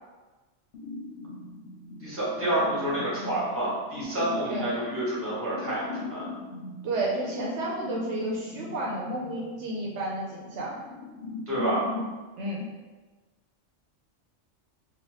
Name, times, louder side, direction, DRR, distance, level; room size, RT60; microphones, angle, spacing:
sound 1, 0.7-12.2, left 3 dB, 70° left, 0.8 m, -40 dB
voice 1, 2.0-6.3 11.5-11.8, right 1 dB, 10° right, -9 dB, 1.2 m, -28 dB
voice 2, 6.8-10.7 12.4-12.7, right 1 dB, 75° right, -3 dB, 0.9 m, -31 dB
2.9 x 2.7 x 3.0 m, 1.3 s
omnidirectional pair, 1.2 m